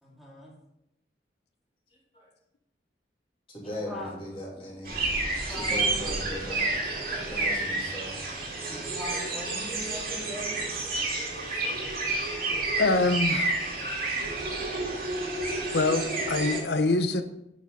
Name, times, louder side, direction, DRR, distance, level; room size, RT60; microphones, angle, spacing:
voice 1, 0.0-0.5 3.6-4.1 5.4-6.1 8.7-10.6, equal, ahead, -4 dB, 2.3 m, -40 dB
voice 2, 3.5-5.0 5.6-6.7 7.1-8.2 11.5-11.6, left 1 dB, 30° left, -4 dB, 2.8 m, -38 dB
sound 1, 4.8-16.6, right 2 dB, 50° right, 2.4 m, -30 dB
voice 3, 12.8-13.6 15.7-17.2, left 2 dB, 65° left, 9 dB, 0.8 m, -25 dB
10.0 x 6.3 x 3.9 m, 0.83 s
head